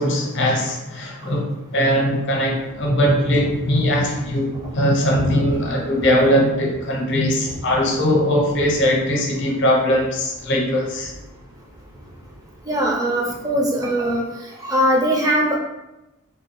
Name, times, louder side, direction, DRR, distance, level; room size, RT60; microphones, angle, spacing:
voice 1, 0.0-11.1, equal, 55° left, 0 dB, 0.7 m, -20 dB
Thunder / Rain, 2.1-13.5, equal, 50° right, 0.9 m, -38 dB
voice 2, 12.7-14.2 14.6-15.6, equal, 15° right, -1 dB, 0.5 m, -20 dB
3.5 x 2.3 x 3.0 m, 0.98 s
head